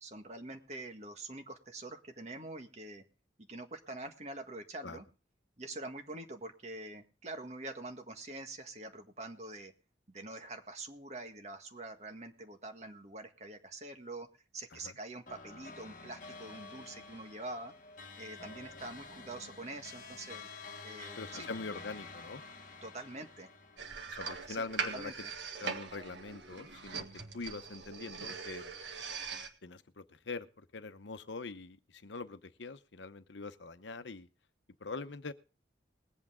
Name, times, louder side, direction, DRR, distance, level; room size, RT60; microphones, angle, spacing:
voice 1, 0.0-3.0 3.4-5.1 5.6-9.7 10.1-14.3 14.5-17.7 18.2-20.4 20.8-21.5 22.8-23.5 24.5-24.7 24.9-25.3, right 2 dB, 35° right, 1.7 m, -45 dB
sound 1, 15.3-24.9, left 4 dB, 45° left, 1.4 m, -50 dB
voice 2, 21.2-22.4 24.1-25.1 25.6-27.1 27.3-28.7 29.6-34.3 34.8-35.3, left 3 dB, 80° left, 0.9 m, -43 dB
sound 2, 23.8-29.5, right 5 dB, 75° right, 1.7 m, -41 dB
21.0 x 8.5 x 3.7 m
head